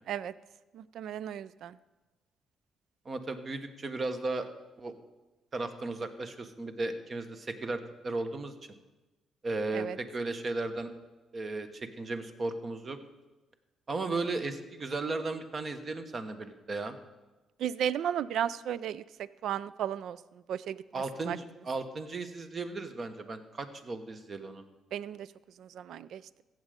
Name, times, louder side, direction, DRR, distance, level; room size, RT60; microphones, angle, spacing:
voice 1, 0.7-1.8 9.7-10.0 17.6-21.4 24.9-25.3 25.6-26.2, right 9 dB, 75° right, 18 dB, 0.3 m, -35 dB
voice 2, 3.0-4.5 4.8-4.9 5.5-8.5 9.4-10.9 11.3-13.0 13.9-17.0 20.9-24.6, right 3 dB, 40° right, 8 dB, 1.1 m, -35 dB
15.0 x 7.6 x 5.1 m, 1.1 s
cardioid pair, 90°, 0 cm